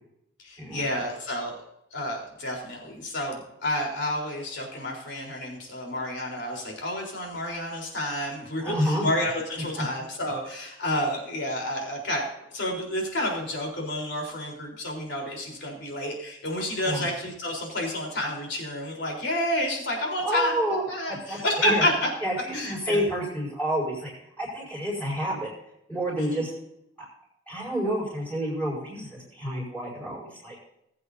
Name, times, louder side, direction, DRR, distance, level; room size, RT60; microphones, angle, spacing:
voice 1, 0.4-1.6 1.9-12.3 12.5-22.1 22.5-23.0 26.2-26.5, left 1 dB, 55° left, 0 dB, 4.0 m, -30 dB
voice 2, 8.6-9.1 9.8-9.9 16.8-17.0 20.2-21.9 22.2-25.5 25.9-26.5 27.5-30.6, equal, 5° left, -11 dB, 5.3 m, -29 dB
20.5 x 8.7 x 2.8 m, 0.80 s
head